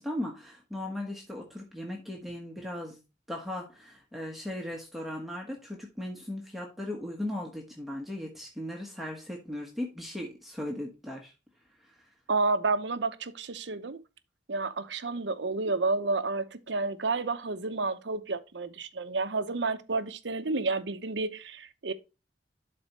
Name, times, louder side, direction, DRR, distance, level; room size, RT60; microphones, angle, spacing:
voice 1, 0.0-3.0 3.3-11.3 11.8-11.9, left 1 dB, ahead, 1.2 m, -37 dB
voice 2, 12.3-14.0 14.5-21.9, right 3 dB, 80° right, 0.8 m, -30 dB
11.5 x 4.3 x 2.9 m
head